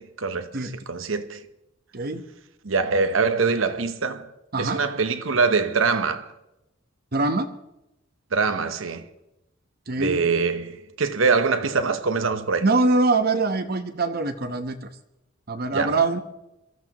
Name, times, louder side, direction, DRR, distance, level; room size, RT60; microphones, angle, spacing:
voice 1, 0.0-1.4 2.6-4.3 4.6-6.3 8.3-9.1 10.0-12.7 15.7-16.0, right 4 dB, 75° right, 0.9 m, -24 dB
voice 2, 7.1-7.5 9.9-10.2 12.6-14.8 15.5-16.2, right 3 dB, 50° right, 1.1 m, -23 dB
23.5 x 14.5 x 3.0 m
head